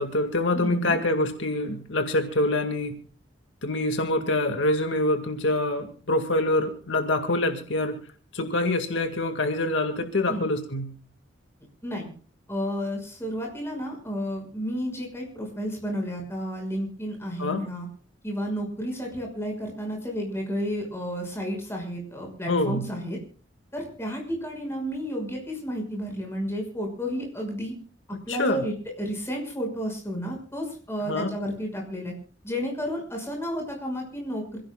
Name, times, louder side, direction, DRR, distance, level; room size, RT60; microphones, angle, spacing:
voice 1, 0.0-3.0 3.6-8.0 8.3-10.9 17.4-17.6 22.5-22.9 28.1-28.7 31.1-31.3, left 2 dB, 75° left, 6 dB, 2.1 m, -25 dB
voice 2, 0.5-1.0 10.3-10.4 11.8-12.1 12.5-17.9 18.2-23.2 23.7-27.7 28.3-32.1 32.4-34.6, equal, 15° left, 1 dB, 6.0 m, -32 dB
27.0 x 16.5 x 2.4 m, 0.43 s
head